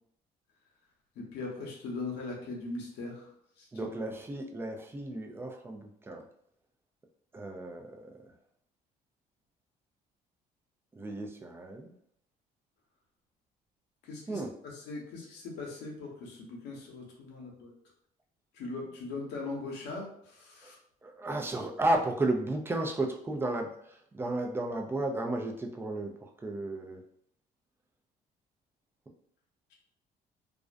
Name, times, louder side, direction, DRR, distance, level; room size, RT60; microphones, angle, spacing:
voice 1, 1.2-3.3 3.6-3.7 14.0-17.7 18.5-20.8, left 3 dB, 80° left, -1 dB, 0.8 m, -40 dB
voice 2, 3.7-6.2 7.3-8.1 11.0-11.9 14.3-14.5 20.6-20.7 21.0-26.1 26.4-27.0, right 2 dB, 15° right, 2 dB, 0.4 m, -33 dB
2.4 x 2.1 x 2.4 m, 0.67 s
cardioid pair, 110°, 17 cm